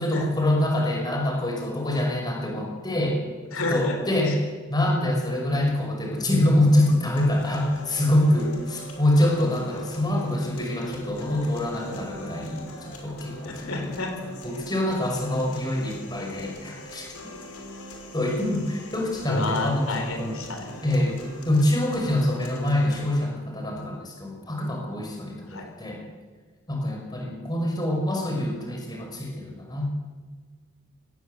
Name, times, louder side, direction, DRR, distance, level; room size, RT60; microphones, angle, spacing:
voice 1, 0.0-3.2 3.6-4.4 4.7-13.9 14.4-17.1 18.1-20.3 20.8-26.0 26.7-30.0, left 1 dB, 20° left, 1 dB, 5.7 m, -25 dB
voice 2, 3.5-4.0 4.3-4.4 13.4-14.1 19.3-20.9 25.5-25.6, left 2 dB, 65° left, 4 dB, 4.3 m, -30 dB
sound 1, 7.2-23.2, left 1 dB, 80° left, 5.8 m, -43 dB
24.5 x 19.0 x 8.3 m, 1.4 s
head